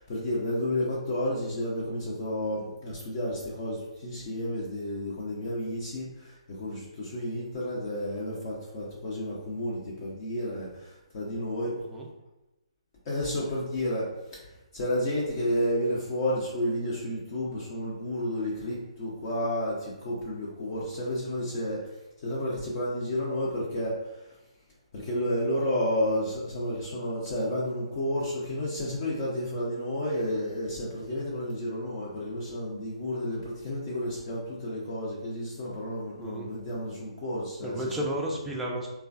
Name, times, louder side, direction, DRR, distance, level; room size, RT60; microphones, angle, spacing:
voice 1, 0.0-11.7 13.1-14.4 14.7-21.8 22.2-23.9 24.9-38.1, left 1 dB, 40° left, -6 dB, 0.6 m, -31 dB
voice 2, 36.2-36.5 37.6-38.9, right 1 dB, 5° right, -3 dB, 0.4 m, -32 dB
3.1 x 2.2 x 2.5 m, 0.98 s
hypercardioid pair, 140°, 3 cm